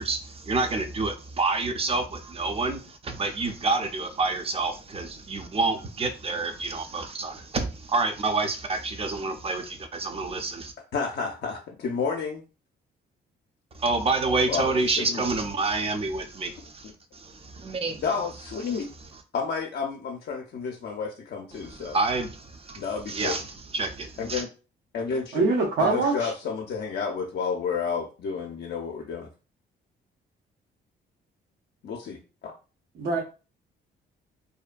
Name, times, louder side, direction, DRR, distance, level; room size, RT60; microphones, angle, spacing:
voice 1, 0.0-10.7 13.7-18.0 18.7-18.9 21.5-24.4, right 3 dB, 30° right, 0.5 m, -28 dB
voice 2, 10.9-12.4 14.5-15.3 18.0-18.9 19.3-22.0 22.7-23.4 24.2-24.5 24.9-25.4 25.8-29.3 31.8-32.5, left 5 dB, 60° left, 0.5 m, -31 dB
voice 3, 25.3-26.3 33.0-33.2, right 3 dB, 70° right, 0.7 m, -23 dB
2.7 x 2.1 x 2.4 m
cardioid pair, 90°, 20 cm